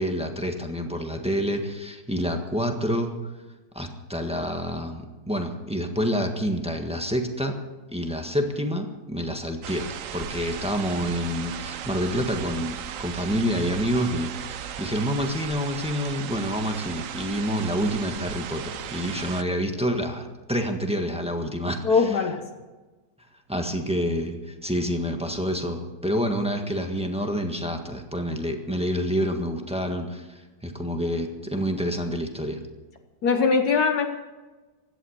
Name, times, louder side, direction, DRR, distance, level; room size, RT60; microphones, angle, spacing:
voice 1, 0.0-3.1 3.7-7.5 7.9-9.8 10.1-22.2 23.5-32.6, equal, 5° right, 4 dB, 1.3 m, -28 dB
sound 1, 9.6-19.4, right 9 dB, 60° right, 0.9 m, -36 dB
voice 2, 21.8-22.4 33.2-34.1, left 5 dB, 60° left, 5 dB, 1.5 m, -21 dB
16.5 x 11.5 x 6.6 m, 1.2 s
omnidirectional pair, 1.9 m